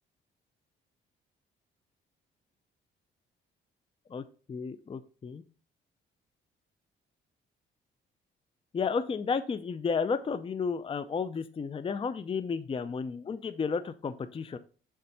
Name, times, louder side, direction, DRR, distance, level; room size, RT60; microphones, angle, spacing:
voice 1, 4.1-5.4 8.7-14.6, left 5 dB, 25° left, 12 dB, 0.5 m, -32 dB
6.9 x 3.7 x 5.5 m, 0.39 s
cardioid pair, 90°, 20 cm